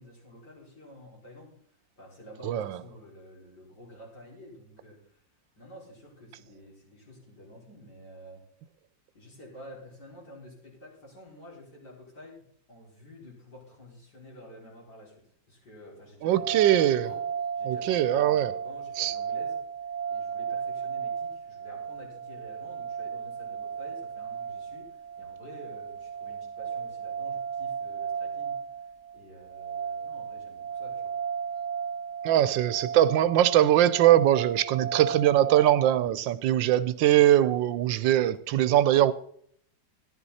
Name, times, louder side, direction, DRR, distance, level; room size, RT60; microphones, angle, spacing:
voice 1, 0.0-1.5 2.0-5.2 5.6-8.4 9.1-15.2 15.5-17.2 17.6-19.6 20.1-24.9 25.2-28.6 29.1-31.1 36.0-36.1, equal, 60° left, 5.8 m, -50 dB
voice 2, 16.2-17.1 17.6-18.5 19.0-19.1 32.2-39.1, right 12 dB, 85° right, 1.4 m, -22 dB
sound 1, 16.3-36.0, right 7 dB, 55° right, 0.9 m, -35 dB
14.0 x 11.0 x 4.2 m
omnidirectional pair, 2.0 m